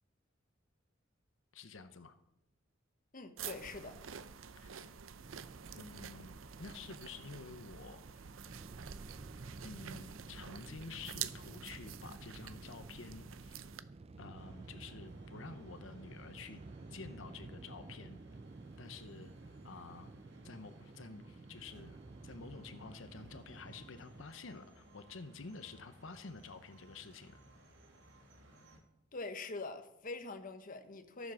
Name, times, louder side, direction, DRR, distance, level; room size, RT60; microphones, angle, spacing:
voice 1, 1.5-2.2 4.6-4.9 5.7-8.3 9.6-13.7 14.2-16.6 16.9-18.2 18.8-19.3 19.6-27.4, left 4 dB, 75° left, 0.8 m, -50 dB
voice 2, 3.1-4.0 29.1-31.3, left 3 dB, 45° left, 1.0 m, -44 dB
sound 1, 3.4-13.8, right 8 dB, 90° right, 0.6 m, -48 dB
sound 2, 5.2-24.2, right 3 dB, 30° right, 0.4 m, -53 dB
sound 3, 14.3-28.8, right 1 dB, 65° right, 2.5 m, -62 dB
14.0 x 7.2 x 6.4 m
head